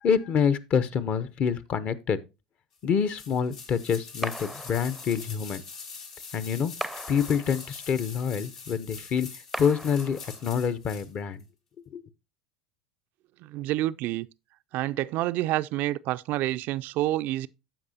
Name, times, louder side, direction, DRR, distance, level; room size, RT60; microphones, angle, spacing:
voice 1, 0.0-2.2 2.8-5.6 6.3-6.7 7.1-9.3 9.6-11.4 11.9-12.0, left 7 dB, 40° left, 0.8 m, -26 dB
sound 1, 3.2-11.1 11.4-11.5, left 5 dB, 70° left, 1.8 m, -44 dB
sound 2, 4.2-5.4 6.8-7.9 9.5-10.6, right 1 dB, ahead, 0.6 m, -38 dB
voice 2, 13.4-14.3 14.7-17.5, right 15 dB, 50° right, 0.3 m, -28 dB
14.5 x 4.9 x 2.7 m
hypercardioid pair, 80°, 4 cm